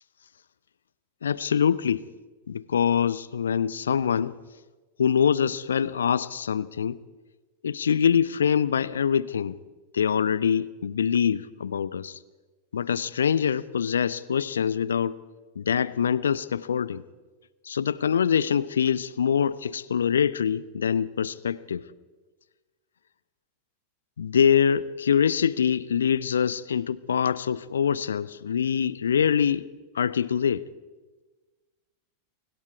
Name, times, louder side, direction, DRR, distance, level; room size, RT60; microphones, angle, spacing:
voice 1, 1.2-2.1 2.5-4.4 5.0-7.0 7.6-9.6 9.9-12.2 12.7-15.2 15.6-17.0 17.6-21.8 24.2-29.7 29.9-30.7, left 7 dB, 70° left, 19 dB, 0.7 m, -24 dB
29.5 x 25.0 x 4.8 m, 1.3 s
figure-of-eight pair, 90°, 0 cm